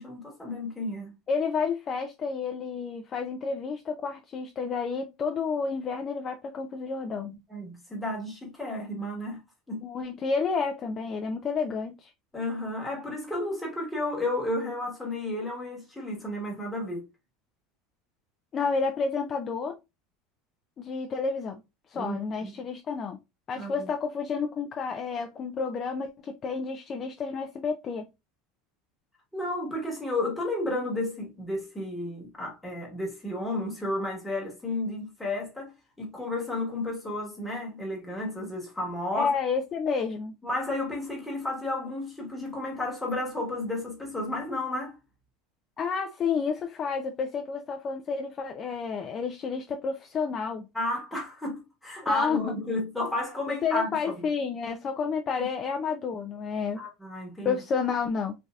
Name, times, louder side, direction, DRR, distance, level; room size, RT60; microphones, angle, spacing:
voice 1, 0.0-1.1 7.5-9.4 9.7-9.8 12.3-17.1 21.9-22.5 23.5-23.9 29.3-39.3 40.4-45.0 50.7-54.3 56.8-57.6, left 1 dB, 5° left, 1.1 m, -32 dB
voice 2, 1.3-7.3 9.8-12.1 18.5-19.8 20.8-21.6 21.9-23.2 23.5-28.1 39.1-40.3 45.8-50.7 52.1-52.5 53.5-56.8 57.4-58.3, left 5 dB, 30° left, 0.3 m, -30 dB
3.2 x 2.7 x 2.3 m
supercardioid pair, 150°, 0 cm